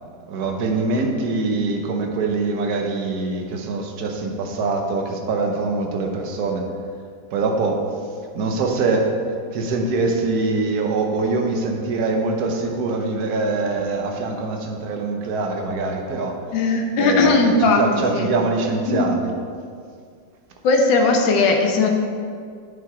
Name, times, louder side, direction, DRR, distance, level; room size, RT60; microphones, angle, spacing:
voice 1, 0.0-6.6 7.3-7.8 8.3-9.2 9.5-16.4 16.7-19.3, right 3 dB, 60° right, 2 dB, 1.4 m, -23 dB
voice 2, 16.5-17.8 18.9-19.1 20.6-21.9, left 3 dB, 85° left, 2 dB, 1.6 m, -17 dB
9.1 x 5.9 x 4.9 m, 2.2 s
omnidirectional pair, 2.0 m